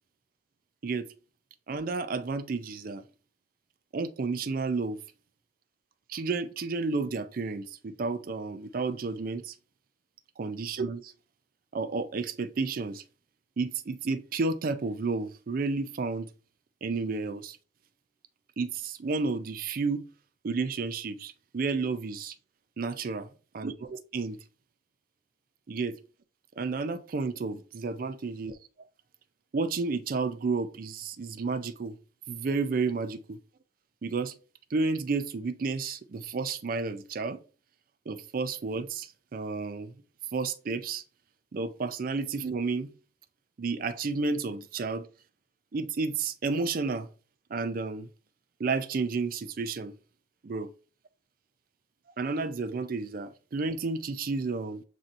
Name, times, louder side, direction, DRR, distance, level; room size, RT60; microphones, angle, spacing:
voice 1, 1.7-3.0 3.9-5.0 6.1-9.5 10.4-11.1 11.7-13.0 13.6-16.3 16.8-17.6 18.6-20.0 20.4-22.3 22.8-23.3 23.5-24.4 25.7-26.0 26.6-28.5 29.5-32.0 32.3-33.4 34.0-34.3 34.7-37.4 38.1-39.9 40.3-41.0 41.5-42.9 43.6-45.1 45.7-47.1 47.5-48.1 48.6-49.9 50.4-50.7 52.2-54.8, right 4 dB, 50° right, 0.4 m, -31 dB
7.3 x 2.7 x 2.6 m
head